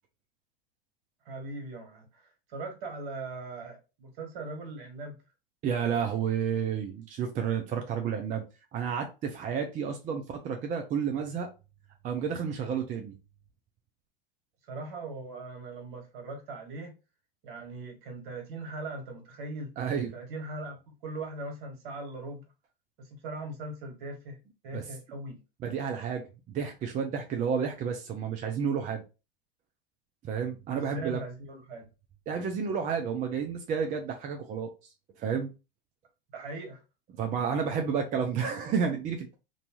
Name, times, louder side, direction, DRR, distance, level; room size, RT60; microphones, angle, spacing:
voice 1, 1.2-5.2 14.7-16.9 17.4-19.7 20.1-22.4 23.0-24.4 24.6-25.4 30.7-31.9 36.3-36.8, right 2 dB, 60° right, 1.4 m, -40 dB
voice 2, 5.6-8.4 8.7-11.5 12.0-13.2 19.8-20.1 24.7-24.9 25.6-29.0 30.2-31.2 32.3-34.7 35.2-35.5 37.1-39.4, right 7 dB, 25° right, 0.4 m, -31 dB
2.5 x 2.3 x 2.9 m
hypercardioid pair, 95°, 29 cm